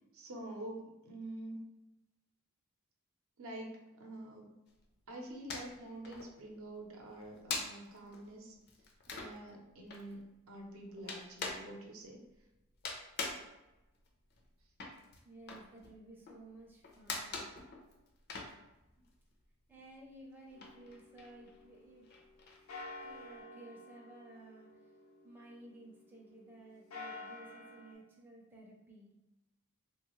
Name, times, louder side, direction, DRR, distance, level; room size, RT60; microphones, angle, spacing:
voice 1, 0.1-1.6 3.4-4.5 5.1-8.6 9.1-12.2, right 1 dB, 75° right, 1 dB, 0.6 m, -47 dB
sound 1, 4.7-5.8 6.0-19.4 19.7-23.4, left 4 dB, 50° left, 0.5 m, -44 dB
voice 2, 15.2-17.5 19.7-22.1 23.0-24.8 25.2-29.1, right 1 dB, 10° right, -4 dB, 0.5 m, -55 dB
sound 2, 20.5-22.3 22.7-26.2 26.7-27.9, left 2 dB, 90° left, 0.6 m, -50 dB
3.0 x 2.3 x 3.0 m, 0.97 s
head